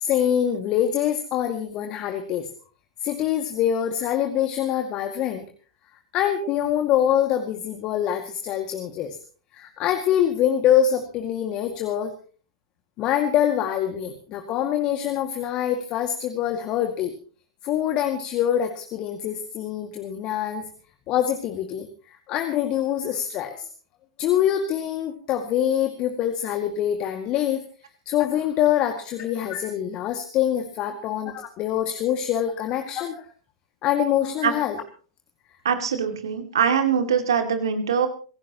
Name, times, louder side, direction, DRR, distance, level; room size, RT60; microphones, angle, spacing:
voice 1, 0.0-2.5 3.0-5.4 6.1-9.2 9.5-12.1 13.0-17.1 17.6-20.7 21.1-21.9 22.3-23.7 24.2-27.6 28.1-33.2 33.8-34.8, left 10 dB, 35° left, 5 dB, 2.1 m, -24 dB
voice 2, 35.6-38.1, right 7 dB, 65° right, 7 dB, 2.5 m, -22 dB
26.5 x 16.5 x 3.0 m, 0.40 s
figure-of-eight pair, 100°, 3 cm